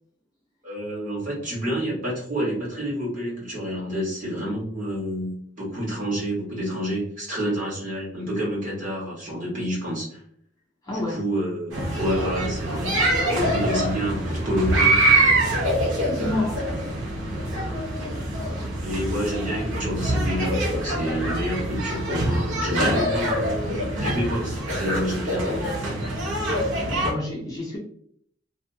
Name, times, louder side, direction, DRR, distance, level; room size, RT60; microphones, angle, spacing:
voice 1, 0.6-10.2 10.9-15.1 16.2-16.5 18.8-25.6, equal, 40° right, -6 dB, 1.4 m, -29 dB
voice 2, 10.8-11.2 16.0-16.6 26.9-27.8, left 2 dB, 20° left, -4 dB, 0.6 m, -29 dB
sound 1, 11.7-27.1, right 1 dB, 80° right, 0.8 m, -24 dB
2.7 x 2.3 x 2.7 m, 0.63 s
head